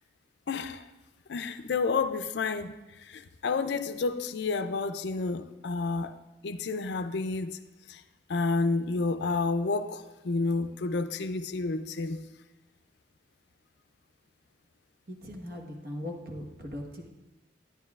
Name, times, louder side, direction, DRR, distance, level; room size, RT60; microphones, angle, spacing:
voice 1, 0.5-0.8 1.3-6.2 6.4-7.6 7.9-8.0 8.3-12.2, left 3 dB, 65° left, 0.4 m, -30 dB
voice 2, 15.1-17.1, left 1 dB, 50° right, 1.2 m, -39 dB
12.0 x 10.0 x 2.4 m
head